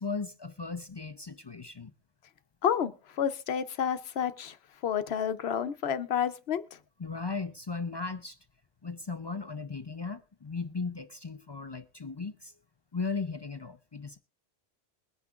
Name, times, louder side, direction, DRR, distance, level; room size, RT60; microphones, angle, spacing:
voice 1, 0.0-1.9 7.0-8.4 8.8-12.5 12.9-14.2, left 4 dB, 35° left, 0.4 m, -36 dB
voice 2, 2.6-4.6 4.8-6.8, left 8 dB, 75° left, 1.0 m, -30 dB
21.5 x 9.6 x 2.4 m
omnidirectional pair, 1.1 m